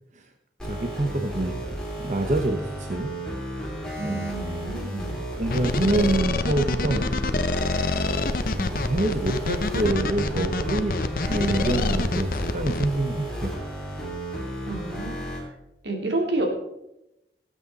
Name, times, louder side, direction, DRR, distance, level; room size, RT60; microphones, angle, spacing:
sound 1, 0.6-15.4, right 1 dB, 5° left, 3.3 m, -33 dB
voice 1, 0.6-1.6 2.0-3.2 3.5-3.8 4.0-4.7 5.4-7.1 8.5-13.6, right 2 dB, 40° right, 4 dB, 0.9 m, -27 dB
voice 2, 4.0-5.2 14.6-15.2 15.8-16.5, right 2 dB, 85° right, 2 dB, 2.6 m, -29 dB
sound 2, 5.5-12.9, left 2 dB, 50° left, 0.7 m, -26 dB
18.5 x 8.3 x 4.1 m, 0.88 s
head